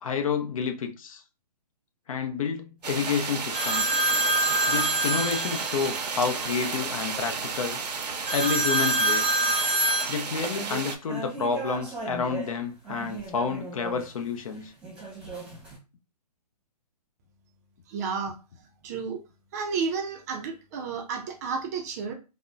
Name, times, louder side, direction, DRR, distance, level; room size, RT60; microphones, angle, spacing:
voice 1, 0.0-1.2 2.1-3.9 4.7-7.8 8.3-9.2 10.1-14.7, left 6 dB, 55° left, 0.5 m, -29 dB
sound 1, 2.8-11.0, right 5 dB, 85° right, 0.6 m, -33 dB
sound 2, 3.5-6.0 8.3-12.5 12.9-14.0 14.8-15.7, right 1 dB, 5° right, 1.0 m, -27 dB
voice 2, 17.9-18.4 18.8-19.2 19.5-22.1, right 5 dB, 25° right, 0.4 m, -31 dB
3.4 x 2.0 x 2.5 m
hypercardioid pair, 145°, 21 cm